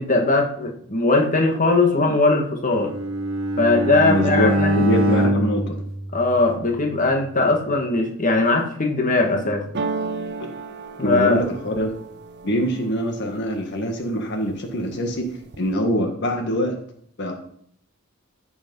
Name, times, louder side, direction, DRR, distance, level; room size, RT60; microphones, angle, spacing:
voice 1, 0.0-2.9 3.6-4.9 6.1-9.7 11.0-11.4, left 3 dB, 40° left, 3 dB, 1.8 m, -20 dB
Bowed string instrument, 2.8-6.9, equal, 80° right, 1.4 m, -23 dB
voice 2, 4.1-4.5 4.8-5.8 11.0-11.9 12.4-15.3 15.6-16.8 17.2-17.4, equal, 55° left, 4 dB, 1.7 m, -24 dB
sound 1, 9.7-13.6 14.1-14.7 15.0-15.7, right 4 dB, 55° right, 0.7 m, -33 dB
14.5 x 7.1 x 5.5 m, 0.65 s
head